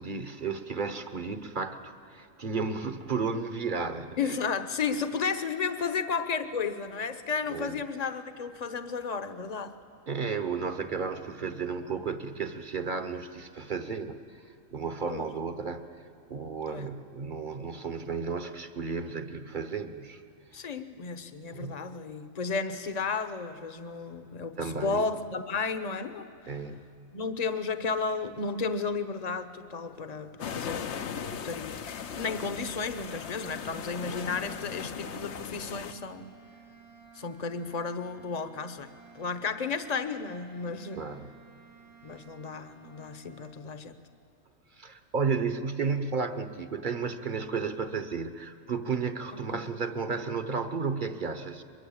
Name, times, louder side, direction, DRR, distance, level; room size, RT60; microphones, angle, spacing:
voice 1, 0.0-4.4 7.5-7.8 10.1-14.4 14.7-15.9 16.3-20.2 20.6-20.7 21.5-21.9 24.6-25.1 26.5-26.9 41.0-41.3 44.8-51.6, right 5 dB, 40° right, 10 dB, 1.2 m, -33 dB
voice 2, 4.2-9.7 15.1-15.3 16.7-16.9 20.5-26.3 27.1-31.2 31.4-36.3 37.1-41.0 42.0-44.0 49.3-49.6, left 5 dB, 35° left, 11 dB, 1.0 m, -33 dB
sound 1, 30.4-35.9, left 7 dB, 60° left, 1.1 m, -38 dB
sound 2, 31.8-43.7, right 5 dB, 75° right, 3.5 m, -55 dB
22.5 x 22.0 x 8.7 m, 2.7 s
omnidirectional pair, 1.4 m